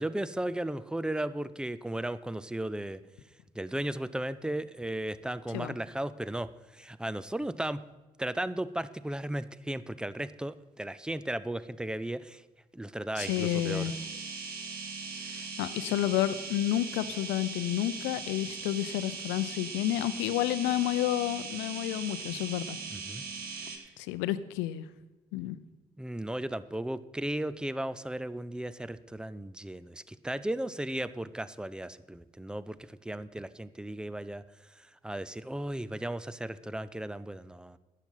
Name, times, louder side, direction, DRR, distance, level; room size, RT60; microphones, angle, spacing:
voice 1, 0.0-3.0 3.5-7.8 8.2-12.4 12.7-13.9 22.9-23.2 23.7-23.8 26.0-34.4 34.8-37.8, right 1 dB, 5° right, 16 dB, 0.6 m, -35 dB
voice 2, 13.2-13.9 15.3-22.8 24.0-24.8 25.3-25.6, left 14 dB, 65° left, 14 dB, 0.7 m, -30 dB
sound 1, 13.2-23.8, right 4 dB, 50° right, 1.8 m, -40 dB
11.5 x 9.1 x 5.7 m, 1.2 s
figure-of-eight pair, 45°, 20 cm